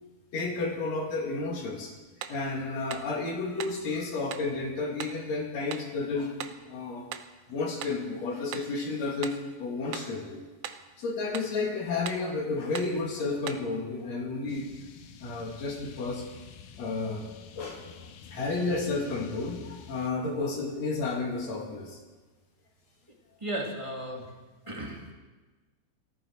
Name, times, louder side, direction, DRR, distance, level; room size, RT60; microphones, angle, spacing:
voice 1, 0.3-1.9 2.3-7.0 7.5-10.4 11.0-14.7 15.2-16.2 16.8-17.3 17.6-17.9 18.3-22.0 24.7-24.8, left 3 dB, 55° left, 0 dB, 3.5 m, -32 dB
sound 1, 2.2-2.5 2.9-3.1 3.6-3.8 4.3-4.5 5.0-5.2 5.7-5.9 6.4-6.6 7.1-7.3 7.8-8.0 8.5-8.8 9.2-9.5 9.9-10.2 10.6-10.9 11.3-11.6 12.1-12.3 12.7-13.0 13.5-13.7, right 10 dB, 90° right, 1.3 m, -40 dB
sound 2, 14.5-20.1, left 7 dB, 80° left, 2.4 m, -48 dB
voice 2, 23.4-24.2 24.7-25.1, right 1 dB, 15° right, -1 dB, 1.5 m, -35 dB
17.5 x 14.5 x 4.7 m, 1.2 s
omnidirectional pair, 3.7 m